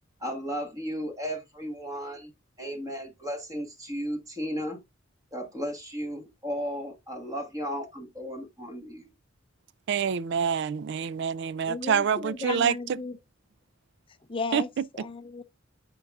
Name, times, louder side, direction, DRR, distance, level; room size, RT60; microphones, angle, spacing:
voice 1, 0.2-2.3 2.6-4.8 5.3-9.0, equal, 20° right, 1.3 m, -34 dB
voice 2, 9.9-12.7 14.5-14.6, right 7 dB, 60° right, 0.4 m, -26 dB
voice 3, 11.7-13.2 14.3-14.7 14.9-15.4, left 3 dB, 25° left, 0.5 m, -34 dB
10.0 x 4.6 x 2.4 m
head